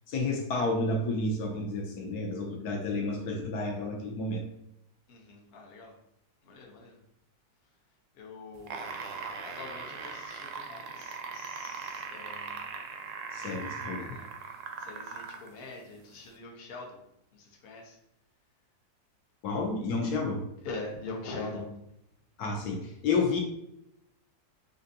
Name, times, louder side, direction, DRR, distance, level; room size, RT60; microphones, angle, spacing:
voice 1, 0.1-4.4 13.3-14.0 19.4-20.4 22.4-23.4, left 3 dB, 70° left, 1 dB, 1.1 m, -30 dB
voice 2, 5.1-5.9 6.4-7.0 8.1-8.9 9.5-12.7 13.4-17.0 17.3-18.0 20.6-21.8, left 3 dB, 50° left, -1 dB, 0.7 m, -43 dB
sound 1, 8.5-15.5 16.3-16.4, right 5 dB, 70° right, 0.7 m, -39 dB
4.3 x 2.6 x 2.6 m, 0.78 s
omnidirectional pair, 1.8 m